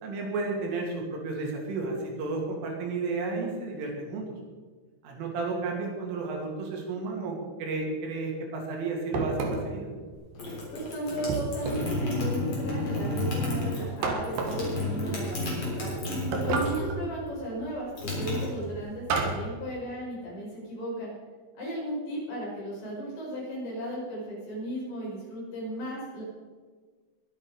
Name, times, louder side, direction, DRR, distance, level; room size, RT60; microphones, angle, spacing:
voice 1, 0.0-4.3 5.0-9.9, right 3 dB, 80° right, 0 dB, 5.2 m, -32 dB
sound 1, 9.1-9.8 11.3-12.0 14.0-14.7 16.3-17.0 19.1-19.5, right 4 dB, 60° right, 2.6 m, -30 dB
sound 2, 10.1-16.9 17.2-19.1, left 1 dB, 30° left, 4.3 m, -32 dB
voice 2, 10.7-15.9 16.4-21.1 21.5-26.2, equal, 55° left, -5 dB, 7.6 m, -35 dB
22.0 x 8.6 x 5.0 m, 1.5 s
omnidirectional pair, 5.6 m